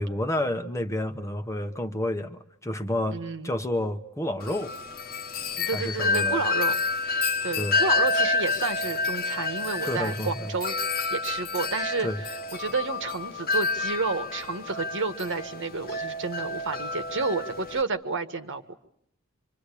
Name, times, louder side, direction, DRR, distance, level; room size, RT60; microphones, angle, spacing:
voice 1, 0.0-3.2 3.4-4.7 5.7-6.4 7.6-7.8 9.8-10.5 12.0-12.2, left 1 dB, 15° left, 7 dB, 1.1 m, -30 dB
voice 2, 3.1-3.5 5.6-6.7 7.0-12.1 12.6-18.8, right 4 dB, 60° right, 8 dB, 1.6 m, -31 dB
Wind chime, 4.4-17.8, left 3 dB, 45° left, 1.3 m, -29 dB
26.5 x 25.5 x 8.5 m, 0.71 s
head